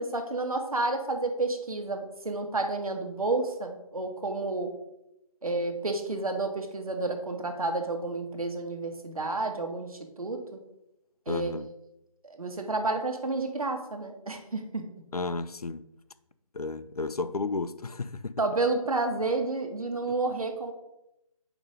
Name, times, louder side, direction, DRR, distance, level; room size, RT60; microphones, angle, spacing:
voice 1, 0.0-4.7 5.4-10.6 11.3-11.5 12.2-15.0 18.4-20.7, right 3 dB, 75° right, 1.3 m, -30 dB
voice 2, 11.3-11.7 15.1-15.8 16.5-18.4, left 3 dB, 85° left, 0.5 m, -33 dB
8.8 x 3.0 x 5.0 m
figure-of-eight pair, 155°, 19 cm